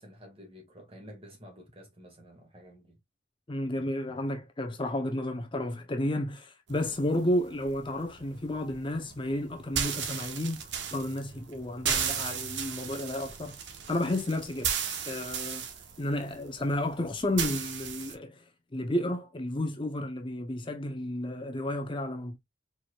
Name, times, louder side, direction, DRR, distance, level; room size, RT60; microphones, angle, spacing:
voice 1, 0.0-3.0, equal, 30° right, 1.9 m, -50 dB
voice 2, 3.5-10.6 10.9-13.6 13.9-15.6 16.0-18.4 18.7-22.4, left 1 dB, 25° left, 0.7 m, -32 dB
sound 1, 6.7-18.1, right 7 dB, 65° right, 1.0 m, -36 dB
4.7 x 4.4 x 2.3 m
head